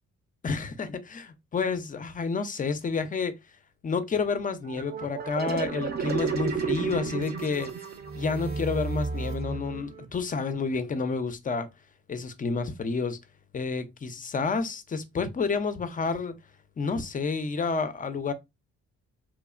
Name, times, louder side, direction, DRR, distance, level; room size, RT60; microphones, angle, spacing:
voice 1, 0.4-3.3 3.8-7.7 8.1-11.7 12.1-13.2 13.5-16.4 16.8-18.3, left 4 dB, 30° left, 0.4 m, -30 dB
sound 1, 4.7-10.1, right 5 dB, 35° right, 0.6 m, -32 dB
3.0 x 2.0 x 2.3 m
cardioid pair, 90°, 30 cm